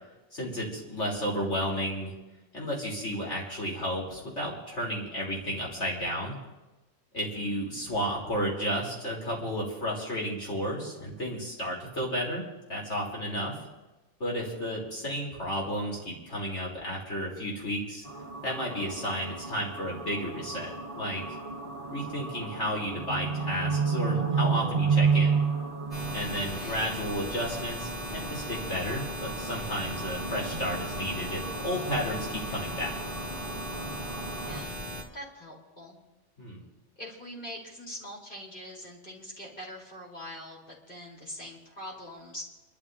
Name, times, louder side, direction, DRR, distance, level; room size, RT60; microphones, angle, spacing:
voice 1, 0.3-2.1 2.5-6.4 7.1-13.6 14.2-18.0 18.4-21.2 21.9-25.3 26.1-32.9 36.4-36.6, equal, 70° left, -4 dB, 4.1 m, -32 dB
voice 2, 7.1-7.5 26.3-26.8 34.4-34.8 35.1-36.0 37.0-40.6 40.9-42.4, equal, 45° left, -4 dB, 4.3 m, -43 dB
sound 1, 18.0-34.6, right 5 dB, 45° right, 1.7 m, -32 dB
sound 2, 25.9-35.0, equal, 25° left, 3.0 m, -38 dB
28.5 x 12.5 x 2.8 m, 1.1 s
omnidirectional pair, 1.3 m